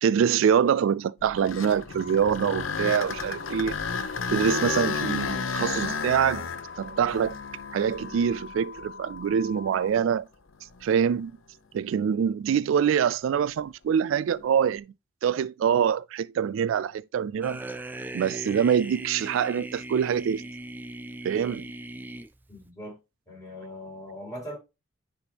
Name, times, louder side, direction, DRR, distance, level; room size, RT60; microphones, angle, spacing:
voice 1, 0.0-3.8 4.3-6.5 6.8-7.3 7.7-10.3 10.8-11.3 11.7-14.9 15.2-17.6 18.1-20.4 21.2-21.7, right 8 dB, 80° right, 0.3 m, -25 dB
sound 1, 1.2-9.3 9.8-9.9 10.7-10.8 14.3-14.7, left 5 dB, 85° left, 0.7 m, -32 dB
sound 2, 1.9-9.9, left 6 dB, 40° left, 0.7 m, -44 dB
sound 3, 17.4-22.7, right 1 dB, 10° right, 0.4 m, -39 dB
voice 2, 22.5-23.0 23.3-24.6, equal, 15° left, 4.3 m, -40 dB
9.8 x 3.5 x 2.8 m
head